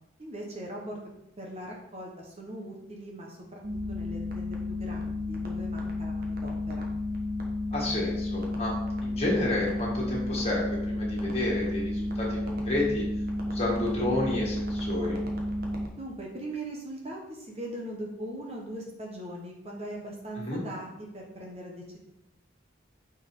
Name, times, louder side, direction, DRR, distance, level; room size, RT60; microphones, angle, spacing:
voice 1, 0.2-1.0 1.4-3.6 3.9-6.9 16.0-22.0, right 1 dB, 30° right, -1 dB, 1.1 m, -40 dB
sound 1, 3.6-15.9, left 1 dB, 50° right, 1.3 m, -32 dB
voice 2, 7.7-8.7 9.0-13.1 13.4-15.2 20.4-20.6, left 2 dB, 30° left, -3 dB, 2.2 m, -30 dB
9.4 x 4.7 x 3.7 m, 0.88 s
head